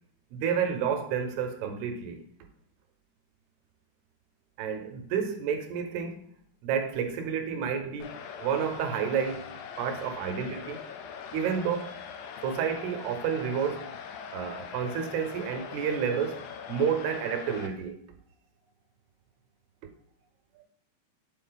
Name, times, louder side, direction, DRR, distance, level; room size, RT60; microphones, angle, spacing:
voice 1, 0.3-2.2 4.6-6.2 6.6-9.5 9.8-10.8 11.3-11.9 12.4-13.9 14.3-16.4 16.7-18.0, right 7 dB, 80° right, 5 dB, 2.6 m, -30 dB
sound 1, 8.0-17.7, left 7 dB, 80° left, 2.1 m, -42 dB
6.9 x 4.1 x 3.8 m, 0.64 s
omnidirectional pair, 4.7 m